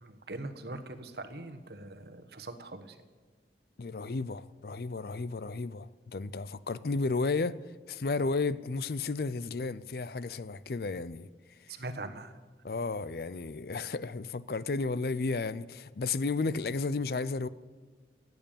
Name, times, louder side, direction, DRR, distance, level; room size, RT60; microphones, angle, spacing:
voice 1, 0.0-3.0 11.7-12.4, right 2 dB, 65° right, 1.2 m, -42 dB
voice 2, 3.8-7.6 7.9-11.3 12.6-17.5, left 3 dB, 55° left, 0.5 m, -33 dB
15.5 x 9.3 x 8.9 m
head